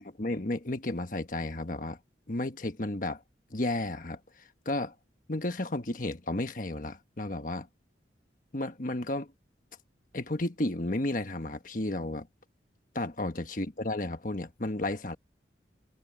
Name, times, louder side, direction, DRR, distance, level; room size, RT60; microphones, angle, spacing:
voice 1, 0.0-2.0 2.3-3.2 3.5-4.9 5.3-7.7 8.5-9.3 10.1-12.3 12.9-15.2, left 2 dB, 45° left, 1.4 m, -33 dB
head